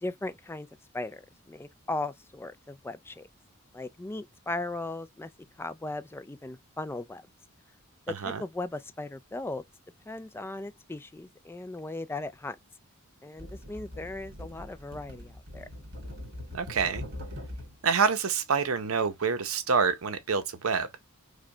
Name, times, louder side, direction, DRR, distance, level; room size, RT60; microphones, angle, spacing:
voice 1, 0.0-0.7 0.9-3.3 3.7-5.3 5.6-7.3 8.1-9.6 10.1-12.6 13.2-15.7, left 2 dB, 10° left, 0.3 m, -37 dB
sound 1, 13.4-17.8 18.9-19.0, left 1 dB, 55° right, 1.7 m, -42 dB
voice 2, 16.5-17.0 17.8-20.9, right 5 dB, 75° right, 0.7 m, -27 dB
4.9 x 2.2 x 2.7 m
head